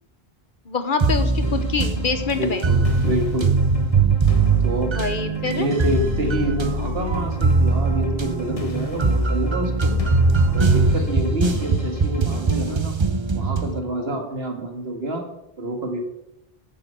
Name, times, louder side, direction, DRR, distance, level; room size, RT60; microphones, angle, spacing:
voice 1, 0.7-2.7 4.8-5.7 10.9-11.0, left 4 dB, 55° left, 9 dB, 1.1 m, -26 dB
sound 1, 1.0-13.8, right 3 dB, 30° right, 0.7 m, -21 dB
sound 2, 1.4-12.8, left 1 dB, 35° left, 1.3 m, -36 dB
voice 2, 2.4-3.6 4.6-4.9 5.4-9.9 10.4-13.0 13.3-15.2 15.6-16.0, right 1 dB, 75° right, 4 dB, 2.0 m, -27 dB
10.5 x 7.1 x 6.8 m, 0.89 s
omnidirectional pair, 1.0 m